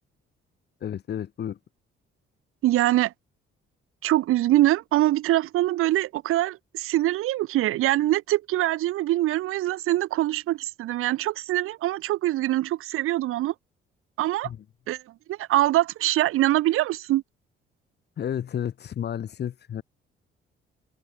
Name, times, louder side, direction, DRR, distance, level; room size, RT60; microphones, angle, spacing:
voice 1, 0.8-1.6 14.4-14.6 18.2-19.8, left 9 dB, 50° left, 6.6 m, -31 dB
voice 2, 2.6-3.1 4.0-13.5 14.2-14.5 14.9-15.0 15.3-17.2, right 15 dB, 85° right, 3.0 m, -23 dB
cardioid pair, 135°, 21 cm